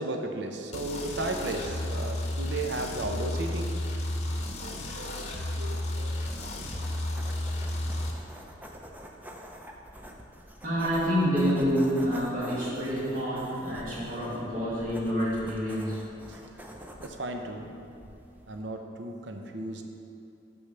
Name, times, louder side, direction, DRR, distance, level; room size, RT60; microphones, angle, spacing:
voice 1, 0.0-3.9 4.3-6.5 14.0-14.2 16.3-16.4 17.0-17.7 18.5-19.8, right 2 dB, 65° right, 4 dB, 0.7 m, -35 dB
sound 1, 0.7-8.1, left 1 dB, 35° left, 0.9 m, -32 dB
sound 2, 5.9-18.6, equal, 10° right, 0.5 m, -47 dB
voice 2, 10.6-16.0, equal, 45° right, -7 dB, 2.2 m, -28 dB
6.6 x 6.2 x 6.7 m, 2.6 s
head